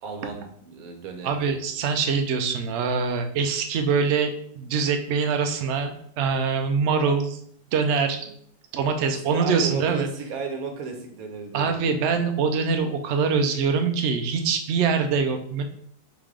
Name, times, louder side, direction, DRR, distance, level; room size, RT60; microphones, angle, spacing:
voice 1, 0.0-1.5 9.1-11.9, right 5 dB, 65° right, 4 dB, 1.1 m, -34 dB
voice 2, 1.2-7.4 7.7-8.4 8.7-10.1 11.5-15.6, right 5 dB, 80° right, 5 dB, 0.6 m, -24 dB
4.1 x 3.4 x 3.6 m, 0.64 s
omnidirectional pair, 1.8 m